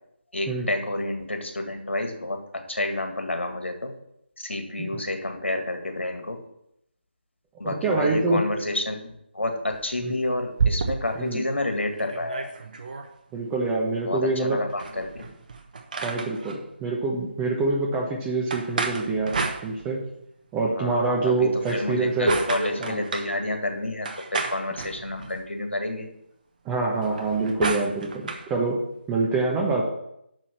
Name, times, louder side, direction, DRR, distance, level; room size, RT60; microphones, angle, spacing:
voice 1, 0.3-3.9 4.4-6.4 7.6-9.0 9.3-12.5 14.0-15.3 20.7-21.0 21.2-24.1 24.3-26.1, left 2 dB, 80° left, 4 dB, 1.9 m, -29 dB
voice 2, 7.6-8.4 10.0-10.1 11.2-11.4 13.3-14.6 16.0-19.3 19.6-20.0 20.5-22.3 22.8-23.0 26.6-28.2 28.5-28.8 29.1-29.8, right 3 dB, 10° right, -2 dB, 1.0 m, -25 dB
sound 1, 9.7-11.3 11.7-11.8 12.0-13.1 14.7-16.6 18.5-20.2 21.5-23.3 24.0-25.5 26.9-28.5, right 4 dB, 45° right, 1.0 m, -30 dB
6.4 x 6.2 x 7.5 m, 0.79 s
figure-of-eight pair, 155°, 6 cm